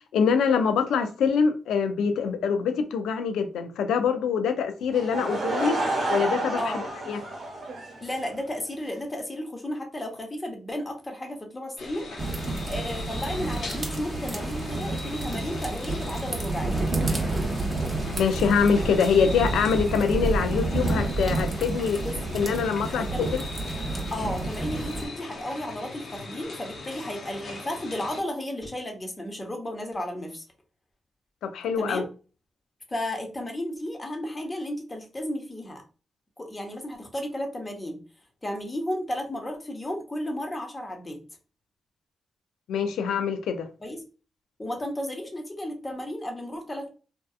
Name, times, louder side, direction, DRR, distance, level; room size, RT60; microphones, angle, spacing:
voice 1, 0.1-5.8 6.1-6.7 7.1-7.2 18.2-22.0 22.3-23.4 31.4-32.0 42.7-43.7, left 6 dB, 85° left, 0.3 m, -24 dB
Laughter / Crowd, 4.9-8.4, right 2 dB, 55° right, 1.1 m, -30 dB
voice 2, 6.6-6.9 8.0-16.9 22.0-22.4 22.9-23.2 24.1-30.4 31.8-32.1 32.9-35.8 36.4-38.0 38.4-41.2 43.8-44.0 44.6-46.9, left 1 dB, 30° left, 0.9 m, -33 dB
sound 1, 11.8-28.2, left 3 dB, 65° left, 0.8 m, -40 dB
sound 2, 12.2-25.1, right 2 dB, 30° right, 0.8 m, -30 dB
2.6 x 2.3 x 2.3 m
supercardioid pair, 50°, 0 cm